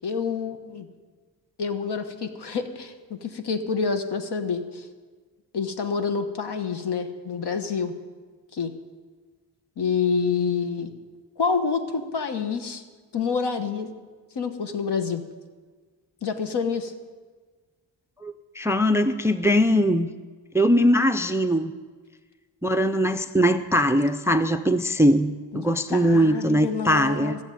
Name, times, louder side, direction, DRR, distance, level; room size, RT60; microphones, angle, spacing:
voice 1, 0.0-0.9 1.6-4.9 5.5-7.9 8.5-8.7 9.8-10.9 11.4-12.8 13.1-13.9 14.3-15.2 16.2-16.9 25.5-27.4, left 5 dB, 65° left, 8 dB, 1.3 m, -27 dB
voice 2, 18.2-20.1 20.5-21.7 22.6-27.3, equal, 5° right, 11 dB, 0.4 m, -21 dB
15.0 x 7.1 x 9.1 m, 1.5 s
cardioid pair, 100°, 43 cm